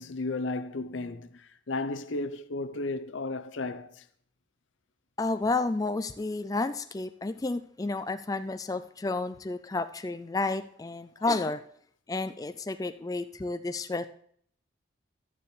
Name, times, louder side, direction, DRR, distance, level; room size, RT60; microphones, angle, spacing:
voice 1, 0.0-4.0, left 2 dB, 90° left, 0.7 m, -34 dB
voice 2, 5.2-11.6 12.1-14.1, left 3 dB, 20° left, 0.3 m, -31 dB
11.5 x 9.3 x 3.3 m
head